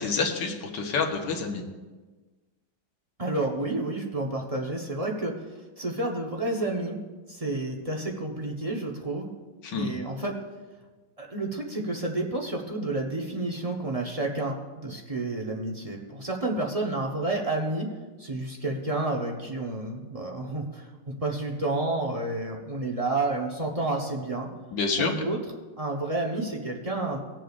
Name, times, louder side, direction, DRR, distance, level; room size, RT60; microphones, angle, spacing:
voice 1, 0.0-1.6 9.6-9.9 24.7-25.2, left 4 dB, 65° left, 1 dB, 1.8 m, -28 dB
voice 2, 3.2-5.3 5.8-7.0 7.3-9.3 9.7-10.3 11.2-17.9 18.2-20.8 21.2-24.5 25.0-25.4 25.8-27.2, right 2 dB, 30° right, 0 dB, 0.7 m, -30 dB
19.5 x 7.5 x 2.4 m, 1.3 s
omnidirectional pair, 2.2 m